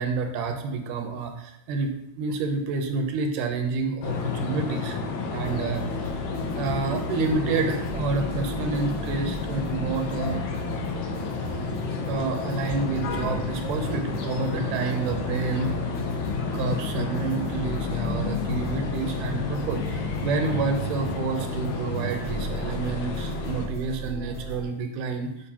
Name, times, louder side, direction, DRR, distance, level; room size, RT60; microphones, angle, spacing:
voice 1, 0.0-5.0 5.3-5.8 6.6-10.4 12.0-15.7 16.5-25.3, right 4 dB, 80° right, 4 dB, 2.3 m, -29 dB
sound 1, 4.0-23.7, left 4 dB, 70° left, 1.8 m, -31 dB
sound 2, 5.4-24.6, left 2 dB, 35° left, 2.8 m, -37 dB
6.8 x 5.1 x 2.9 m, 0.81 s
omnidirectional pair, 3.8 m